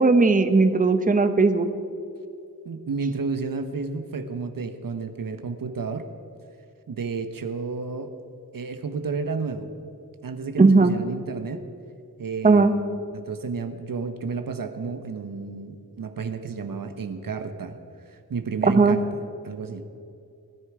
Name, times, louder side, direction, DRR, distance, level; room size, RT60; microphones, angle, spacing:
voice 1, 0.0-1.7 10.6-10.9 12.4-12.7 18.7-19.0, right 3 dB, 20° right, 8 dB, 0.9 m, -17 dB
voice 2, 2.6-6.1 6.9-8.1 8.5-9.7 10.2-11.6 12.2-12.8 13.1-17.8 18.1-19.1 19.4-19.8, right 4 dB, 65° right, 9 dB, 1.0 m, -31 dB
19.5 x 9.6 x 4.8 m, 2.5 s
cardioid pair, 50°, 37 cm